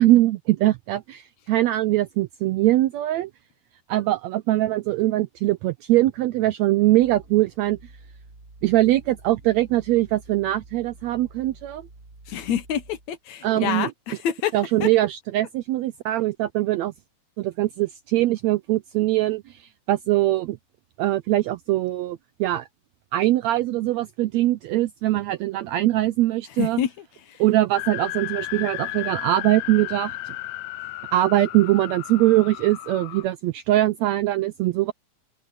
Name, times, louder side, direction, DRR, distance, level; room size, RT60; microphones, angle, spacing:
voice 1, 0.0-3.3 3.9-7.9 8.6-11.9 13.4-13.9 14.5-16.9 17.4-20.6 21.0-22.7 23.1-26.8 27.4-30.3 31.1-34.9, right 15 dB, 85° right, 1.6 m, -22 dB
sound 1, 7.0-13.2, right 2 dB, 25° right, 3.8 m, -48 dB
voice 2, 12.3-14.5 14.8-14.9 26.6-26.9 27.3-27.4, left 9 dB, 65° left, 2.2 m, -27 dB
sound 2, 27.7-33.2, left 18 dB, 85° left, 1.6 m, -34 dB
omnidirectional pair, 3.7 m